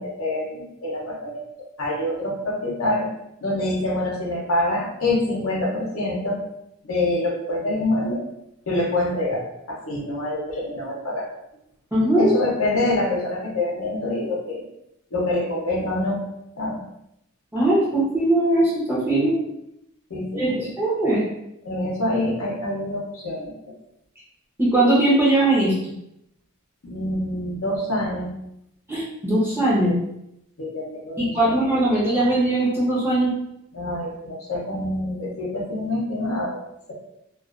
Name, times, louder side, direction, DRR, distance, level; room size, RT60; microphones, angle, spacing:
voice 1, 0.0-1.4 1.8-3.1 3.4-6.4 6.8-8.2 8.7-11.3 12.2-14.6 15.1-16.2 16.6-16.8 20.1-20.7 21.6-23.5 26.9-28.3 29.8-29.9 30.6-31.6 33.7-36.6, left 1 dB, 75° left, -3 dB, 0.7 m, -26 dB
voice 2, 11.9-12.3 17.5-19.4 20.4-21.2 24.6-25.7 28.9-29.9 31.2-33.3, right 1 dB, 10° right, -7 dB, 0.7 m, -20 dB
2.4 x 2.3 x 2.4 m, 0.83 s
head